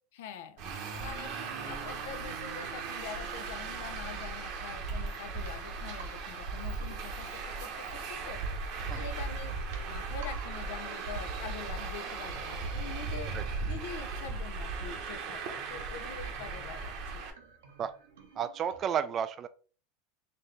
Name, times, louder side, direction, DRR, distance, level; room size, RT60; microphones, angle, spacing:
voice 1, 0.1-0.6 1.0-8.4 9.0-9.6 9.9-13.4 13.7-17.2, left 7 dB, 75° left, 10 dB, 0.6 m, -45 dB
Traffic noise roadway noise, 0.6-17.3, right 4 dB, 60° right, 0.9 m, -37 dB
sound 1, 0.8-18.8, right 5 dB, 90° right, 0.9 m, -54 dB
voice 2, 18.4-19.5, right 8 dB, 35° right, 11 dB, 0.3 m, -32 dB
4.3 x 2.6 x 3.2 m, 0.38 s
supercardioid pair, 120°, 0 cm